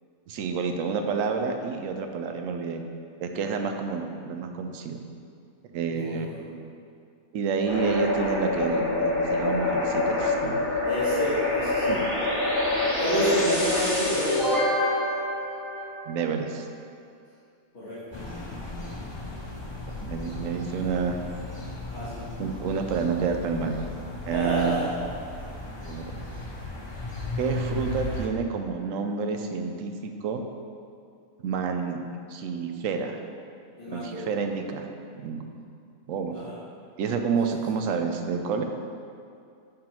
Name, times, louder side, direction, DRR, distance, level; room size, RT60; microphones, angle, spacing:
voice 1, 0.3-2.8 3.2-5.0 5.7-6.6 7.3-10.7 11.9-12.0 16.1-16.7 20.0-21.2 22.4-23.8 24.2-24.8 25.8-26.1 27.4-30.4 31.4-32.0 32.3-33.2 33.9-34.9 35.2-35.4 36.1-36.3 37.0-38.6, right 5 dB, 70° right, 5 dB, 0.9 m, -29 dB
voice 2, 5.9-6.4 10.8-12.0 13.0-14.5 17.7-18.0 21.9-22.2 24.2-24.9 33.8-34.2 36.3-36.6, equal, 45° left, -14 dB, 2.1 m, -29 dB
sound 1, 7.7-16.3, left 2 dB, 65° left, 2.4 m, -26 dB
sound 2, 18.1-28.3, left 2 dB, 30° left, 0.6 m, -36 dB
8.6 x 3.8 x 4.3 m, 2.4 s
omnidirectional pair, 1.5 m